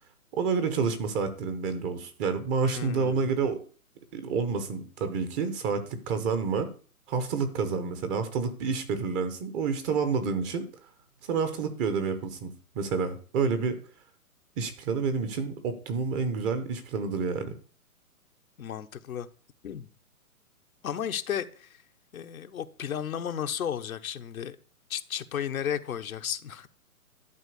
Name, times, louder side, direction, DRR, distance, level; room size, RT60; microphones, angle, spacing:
voice 1, 0.3-3.6 4.1-6.7 7.1-10.7 11.2-13.8 14.6-17.5, right 5 dB, 15° right, 0.8 m, -29 dB
voice 2, 2.6-3.3 18.6-19.3 19.6-19.9 20.8-21.8 22.1-24.6 24.9-26.7, left 9 dB, 70° left, 1.1 m, -34 dB
11.5 x 4.5 x 8.2 m
hypercardioid pair, 145°, 44 cm